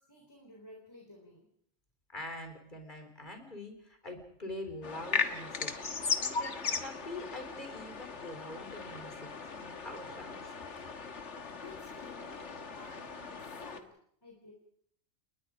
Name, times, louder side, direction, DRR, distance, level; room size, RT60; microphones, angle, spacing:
voice 1, 0.0-1.5 9.7-10.0 11.1-14.5, left 1 dB, 20° left, -1 dB, 3.9 m, -54 dB
voice 2, 2.1-5.7 6.1-11.0, left 1 dB, 40° left, 5 dB, 4.4 m, -45 dB
sound 1, 4.8-13.8, left 5 dB, 75° left, 1.9 m, -38 dB
30.0 x 20.5 x 5.2 m, 0.66 s
omnidirectional pair, 1.2 m